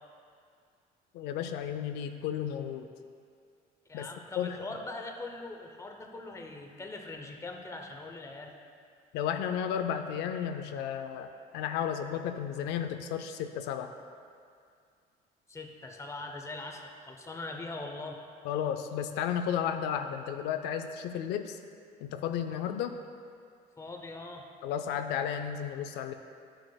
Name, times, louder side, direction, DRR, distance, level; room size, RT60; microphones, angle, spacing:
voice 1, 1.1-2.9 3.9-4.1 4.4-4.6 9.1-13.9 18.4-21.6 22.0-23.0 24.6-26.1, left 8 dB, 90° left, 7 dB, 0.4 m, -33 dB
voice 2, 3.9-8.5 15.5-18.2 23.8-24.5, left 2 dB, 15° left, 2 dB, 0.8 m, -41 dB
11.0 x 6.3 x 2.3 m, 2.3 s
cardioid pair, 110°, 17 cm